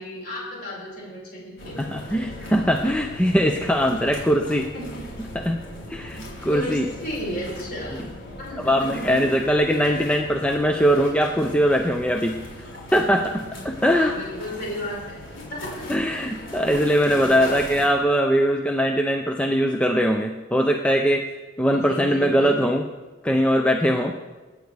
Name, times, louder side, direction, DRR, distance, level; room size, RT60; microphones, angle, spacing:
voice 1, 0.0-1.8 4.7-5.1 6.5-8.0 8.4-9.4 9.7-10.1 13.8-15.2 15.5-16.4 17.0-17.4 21.7-22.6, equal, 50° left, -4 dB, 5.3 m, -34 dB
sound 1, 1.6-17.9, left 1 dB, 75° left, 4.1 m, -39 dB
voice 2, 1.8-4.7 5.3-6.9 8.6-12.4 12.9-14.1 15.9-21.3 21.6-22.8 23.2-24.2, equal, 5° left, 3 dB, 0.5 m, -21 dB
23.5 x 9.4 x 3.4 m, 1.3 s
head